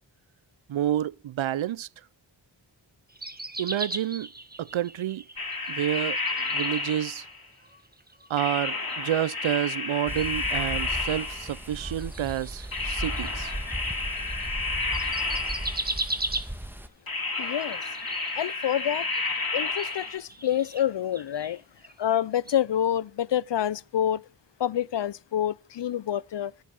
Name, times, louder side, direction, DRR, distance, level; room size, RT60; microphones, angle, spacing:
voice 1, 0.7-1.9 3.6-4.3 4.6-5.2 5.7-6.2 6.5-7.2 8.3-13.5, right 11 dB, 75° right, 0.5 m, -29 dB
sound 1, 3.1-7.3 7.6-14.5 14.8-16.9 17.5-22.2 22.4-22.6, right 2 dB, 20° right, 1.4 m, -39 dB
sound 2, 5.4-7.5 8.4-11.8 12.7-16.0 17.1-20.2, left 3 dB, 50° left, 2.7 m, -31 dB
sound 3, 10.1-16.9, right 1 dB, 5° right, 1.5 m, -37 dB
voice 2, 17.4-17.8 18.3-19.1 19.5-21.6 22.0-24.2 24.6-26.5, left 10 dB, 65° left, 0.5 m, -27 dB
10.0 x 8.9 x 7.7 m
wide cardioid pair, 55°, 47 cm